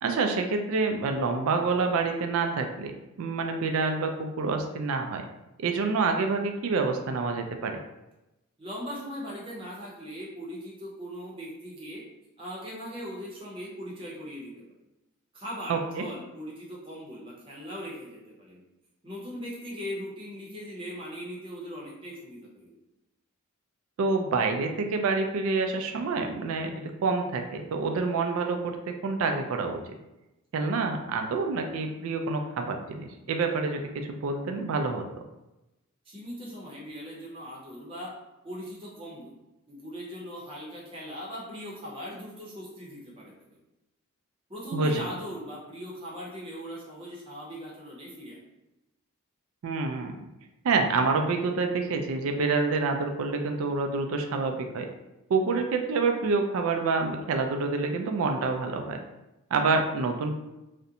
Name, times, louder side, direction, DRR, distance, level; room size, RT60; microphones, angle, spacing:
voice 1, 0.0-5.2 5.6-7.8 15.7-16.0 24.0-29.8 30.5-35.0 44.7-45.1 49.6-50.2 50.6-54.9 55.3-59.0 59.5-60.3, right 4 dB, 65° right, 4 dB, 0.3 m, -27 dB
voice 2, 8.6-12.0 12.4-14.7 15.3-18.6 19.0-22.7 36.0-38.1 38.4-39.3 39.7-43.6 44.5-48.4, equal, 25° right, -5 dB, 0.7 m, -39 dB
2.4 x 2.1 x 2.7 m, 0.96 s
head